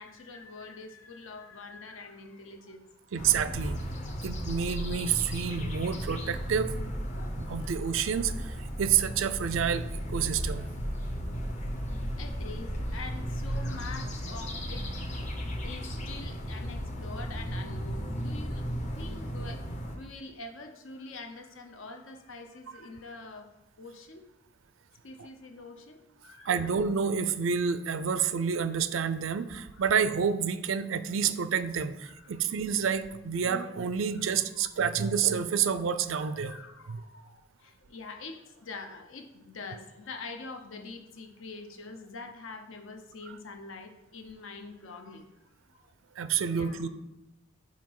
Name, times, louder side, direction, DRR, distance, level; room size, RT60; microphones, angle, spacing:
voice 1, 0.0-3.1 4.8-5.1 7.1-7.8 12.2-15.3 15.6-23.5 23.8-24.2 25.0-26.6 32.0-32.6 34.1-34.3 34.6-35.2 35.5-35.7 36.2-45.3 45.7-45.9 46.4-46.9, left 3 dB, 75° left, 6 dB, 0.7 m, -45 dB
voice 2, 3.1-3.8 4.2-6.7 7.4-9.8 10.1-10.7 25.2-25.3 26.5-36.5 36.9-37.0 46.2-46.9, right 7 dB, 75° right, 12 dB, 0.4 m, -29 dB
sound 1, 3.2-20.0, equal, 35° left, 0.8 m, -35 dB
5.8 x 4.5 x 4.7 m, 0.94 s
head